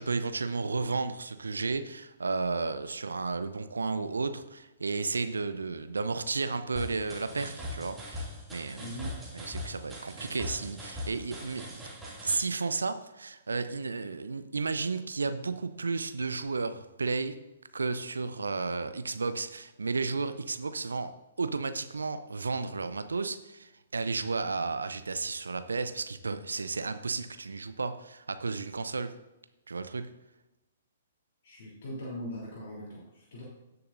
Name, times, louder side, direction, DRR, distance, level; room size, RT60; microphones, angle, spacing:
voice 1, 0.0-8.9 9.3-11.8 12.2-17.3 17.7-21.1 21.4-29.1 29.7-30.1, right 4 dB, 75° right, 11 dB, 0.6 m, -33 dB
sound 1, 6.8-12.4, left 1 dB, 10° right, 2.5 m, -41 dB
voice 2, 8.8-9.2 31.4-33.4, equal, 55° left, -5 dB, 3.4 m, -40 dB
16.5 x 6.9 x 2.6 m, 1.0 s
figure-of-eight pair, 120°, 0 cm